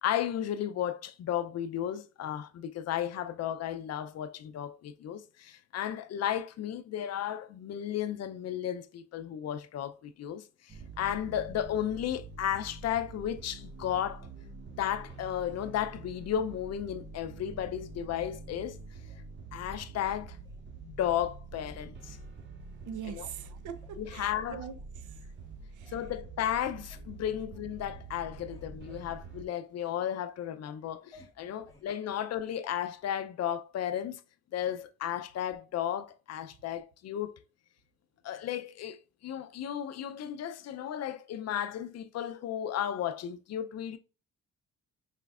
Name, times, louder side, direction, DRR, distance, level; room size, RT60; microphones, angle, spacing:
voice 1, 0.0-14.3 14.8-18.8 19.5-20.4 20.8-22.2 23.1-23.3 24.0-24.6 25.9-34.2 34.5-37.3 38.2-44.0, left 10 dB, 55° left, 0.5 m, -34 dB
sound 1, 10.7-29.5, right 4 dB, 35° right, 0.8 m, -46 dB
sound 2, 18.5-19.2 19.6-20.6 21.0-21.3 21.6-22.5 23.1-23.2 23.7-24.8 25.4-25.5 25.8-26.3 26.5-27.2 27.6-27.9 28.2-30.0 30.4-31.9 32.6-32.8, left 2 dB, 10° left, 1.5 m, -57 dB
voice 2, 22.9-25.2 25.7-26.0, right 8 dB, 80° right, 0.7 m, -43 dB
5.0 x 3.2 x 2.3 m
cardioid pair, 90°, 30 cm